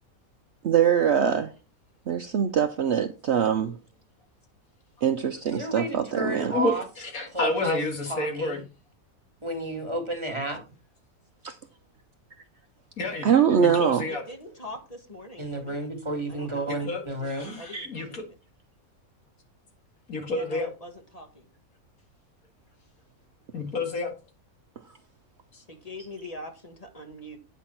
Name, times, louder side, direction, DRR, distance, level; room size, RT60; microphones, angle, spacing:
voice 1, 0.6-1.5 2.1-3.8 5.0-6.5 11.4-11.6 13.2-14.0 17.7-17.9, right 8 dB, 60° right, 0.8 m, -23 dB
voice 2, 5.6-6.8 7.3-7.8 8.1-8.6 9.4-10.6 15.4-17.6, right 1 dB, 20° right, 2.0 m, -32 dB
voice 3, 6.5-8.6 13.0-13.3 13.6-14.2 16.7-18.3 20.1-20.7 23.5-24.1 25.5-25.6, left 2 dB, 70° left, 2.4 m, -30 dB
voice 4, 14.1-15.9 16.3-16.9 17.2-17.3 17.5-18.2 20.3-21.5 25.7-27.4, left 1 dB, 25° left, 1.5 m, -43 dB
9.2 x 6.2 x 4.4 m
omnidirectional pair, 1.6 m